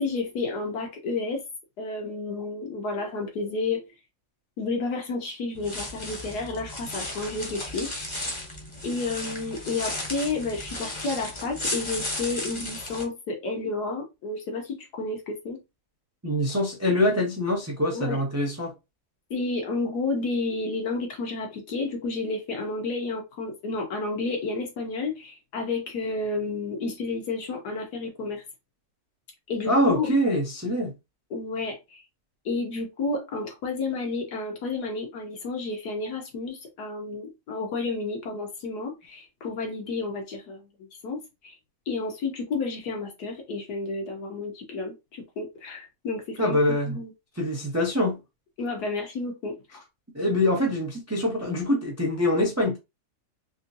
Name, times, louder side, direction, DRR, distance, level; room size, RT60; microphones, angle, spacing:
voice 1, 0.0-1.4 1.8-3.9 4.6-8.1 8.8-15.6 17.9-18.2 19.3-28.4 29.5-30.1 31.3-32.0 32.4-40.7 41.0-41.6 41.9-46.6 46.9-47.1 48.6-49.8, left 3 dB, 80° left, 1.6 m, -31 dB
sound 1, 5.5-13.0, left 1 dB, 25° left, 0.7 m, -35 dB
voice 2, 16.2-18.7 29.6-30.9 46.4-47.0 47.4-48.2 50.1-52.8, left 1 dB, 25° right, 0.3 m, -24 dB
3.5 x 2.6 x 2.7 m
omnidirectional pair, 1.7 m